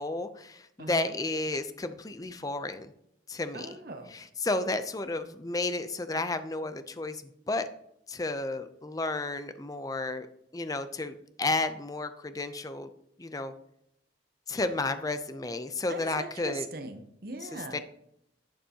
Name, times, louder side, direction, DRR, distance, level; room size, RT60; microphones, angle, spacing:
voice 1, 0.0-2.9 3.3-3.8 4.1-7.2 7.5-7.7 8.1-10.3 10.5-12.9 13.2-13.5 14.5-16.7 17.4-17.8, left 2 dB, 20° left, 10 dB, 0.5 m, -32 dB
voice 2, 0.8-1.1 3.5-4.1 15.9-17.8, right 2 dB, 55° right, 7 dB, 0.9 m, -41 dB
11.5 x 8.0 x 2.9 m, 0.76 s
head